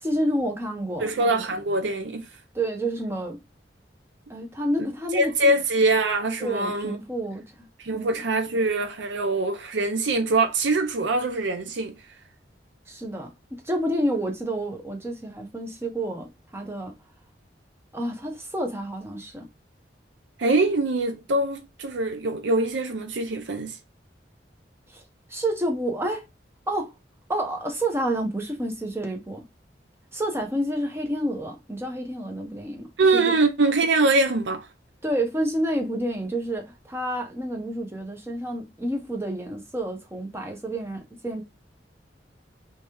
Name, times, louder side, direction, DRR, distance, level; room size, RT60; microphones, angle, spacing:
voice 1, 0.0-1.2 2.5-3.4 4.3-5.3 6.4-7.7 7.9-8.2 12.9-16.9 17.9-19.5 24.9-25.0 25.3-26.3 26.7-26.9 27.3-29.4 30.1-33.4 35.0-41.4, right 1 dB, 15° right, 0.8 m, -29 dB
voice 2, 1.0-2.3 5.1-7.0 7.8-11.9 20.4-23.8 33.0-34.7, right 2 dB, 90° right, 0.6 m, -23 dB
3.4 x 3.1 x 3.0 m
head